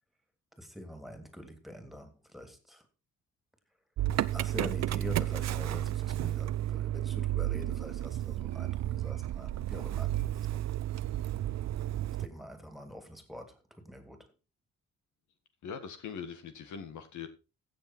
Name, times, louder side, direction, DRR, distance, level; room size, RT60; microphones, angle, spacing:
voice 1, 0.5-2.9 4.3-10.6 12.2-14.3, equal, ahead, 2.9 m, -45 dB
Motor vehicle (road) / Engine starting, 4.0-12.3, right 13 dB, 60° right, 0.7 m, -32 dB
voice 2, 15.6-17.3, left 7 dB, 75° left, 1.9 m, -41 dB
15.5 x 6.9 x 4.5 m
cardioid pair, 90°, 30 cm